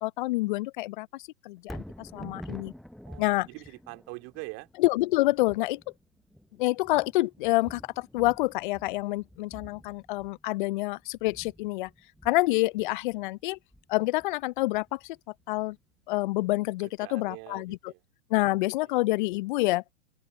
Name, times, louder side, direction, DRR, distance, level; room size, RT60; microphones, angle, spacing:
voice 1, 0.0-2.7 3.2-3.5 4.8-5.8 6.6-11.9 12.2-13.6 13.9-15.2 15.5-15.8 16.1-17.9 18.3-20.0, left 20 dB, 40° left, 0.6 m, -27 dB
Thunder, 1.6-15.8 16.3-16.4, equal, ahead, 0.7 m, -48 dB
voice 2, 3.0-4.7 16.8-18.0 18.4-18.6, right 27 dB, 35° right, 2.6 m, -44 dB
open air
hypercardioid pair, 125°, 40 cm